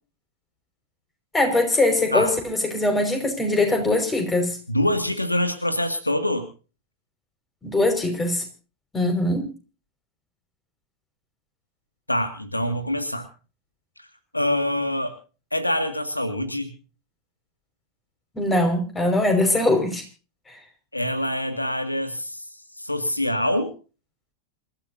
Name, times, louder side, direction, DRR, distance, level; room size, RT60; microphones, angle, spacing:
voice 1, 1.3-4.6 7.6-8.4 8.9-9.5 18.3-20.0, left 2 dB, 15° left, 6 dB, 5.4 m, -22 dB
voice 2, 4.7-6.5 12.1-13.3 14.3-15.1 15.5-16.7 20.9-22.4 22.8-23.7, left 1 dB, 85° left, 9 dB, 2.1 m, -25 dB
27.5 x 14.5 x 2.7 m, 0.35 s
figure-of-eight pair, 90°, 0 cm